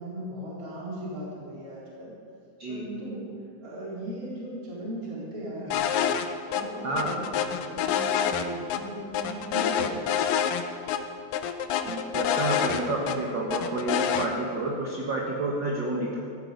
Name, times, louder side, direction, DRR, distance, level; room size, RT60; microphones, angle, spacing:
voice 1, 0.0-2.1 2.7-3.3 3.6-6.0 6.5-7.2 7.4-10.2, right 1 dB, 25° right, -7 dB, 4.4 m, -37 dB
sound 1, 5.7-6.3 6.5-6.6 7.0-8.8 9.1-10.6 10.9-11.0 11.3-13.2 13.5-14.3, left 9 dB, 90° left, 2.4 m, -26 dB
voice 2, 6.8-7.1 11.8-16.2, right 2 dB, 50° right, -2 dB, 1.6 m, -29 dB
16.5 x 14.0 x 5.3 m, 2.4 s
omnidirectional pair, 3.7 m